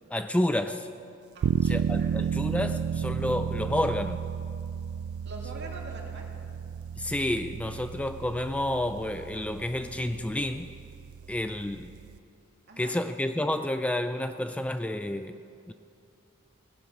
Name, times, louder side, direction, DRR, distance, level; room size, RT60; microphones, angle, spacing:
voice 1, 0.1-0.9 1.6-4.2 7.0-10.7 11.3-11.9 12.8-15.4 15.7-15.8, left 1 dB, 5° left, 9 dB, 0.3 m, -30 dB
voice 2, 1.3-2.1 5.2-6.3 12.7-12.9, right 2 dB, 55° right, -1 dB, 2.4 m, -44 dB
sound 1, 1.4-12.2, right 7 dB, 80° right, 0.3 m, -33 dB
17.0 x 11.0 x 6.2 m, 2.5 s
head